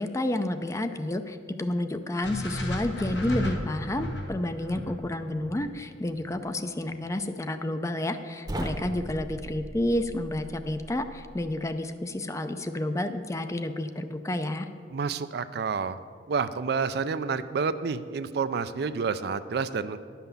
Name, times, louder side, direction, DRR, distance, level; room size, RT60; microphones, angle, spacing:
voice 1, 0.0-14.7, left 1 dB, 15° left, 9 dB, 0.4 m, -30 dB
sound 1, 2.2-6.4, left 1 dB, 80° left, 1.4 m, -34 dB
sound 2, 8.5-11.5, right 1 dB, 20° right, 0.8 m, -38 dB
voice 2, 14.9-16.0 16.3-20.0, right 5 dB, 60° right, 12 dB, 0.4 m, -29 dB
11.0 x 5.8 x 7.0 m, 2.1 s
head